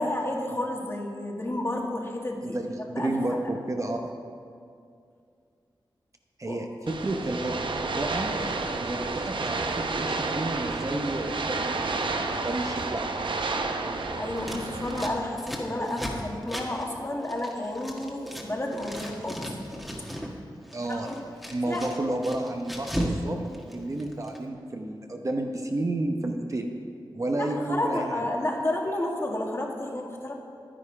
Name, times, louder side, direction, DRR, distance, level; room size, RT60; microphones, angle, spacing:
voice 1, 0.0-2.6 2.9-3.4 6.5-6.7 14.2-19.5 19.8-20.3 20.9-21.2 21.7-22.1 27.3-30.3, left 1 dB, 30° left, 0 dB, 1.6 m, -31 dB
voice 2, 2.4-4.1 6.4-7.6 7.9-8.3 8.7-13.0 20.7-21.2 21.5-23.4 23.6-26.7 27.1-28.2, right 2 dB, 40° right, 3 dB, 0.9 m, -31 dB
sound 1, 6.9-15.1, right 3 dB, 70° right, 0.8 m, -30 dB
Scissors, 14.4-18.5 18.7-20.3 20.6-23.2 23.5-24.4, equal, ahead, 1.5 m, -36 dB
11.0 x 10.0 x 4.9 m, 2.3 s
wide cardioid pair, 70°, 9 cm